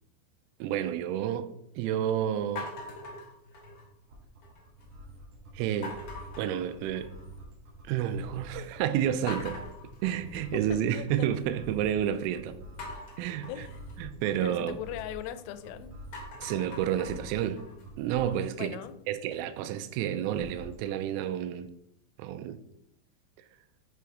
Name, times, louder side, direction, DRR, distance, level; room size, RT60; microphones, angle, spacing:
voice 1, 0.6-2.7 5.6-6.0 6.4-7.1 7.9-9.6 10.0-12.6 13.2-13.7 14.0-14.8 16.4-17.6 18.0-18.8 19.1-21.7 22.2-22.6, right 10 dB, 85° right, 3.1 m, -30 dB
sound 1, 2.6-4.0 4.4-4.9 5.8-7.4 7.7-8.2 8.6-8.7 9.3-11.4 12.8-15.6 16.0-18.9, left 2 dB, 55° left, 1.8 m, -44 dB
sound 2, 4.1-18.5 20.3-20.9, right 1 dB, 65° right, 1.9 m, -47 dB
voice 2, 10.7-11.3 13.5-13.9 14.4-15.9 18.6-19.0, left 12 dB, 90° left, 3.2 m, -39 dB
7.7 x 3.4 x 4.8 m
omnidirectional pair, 5.8 m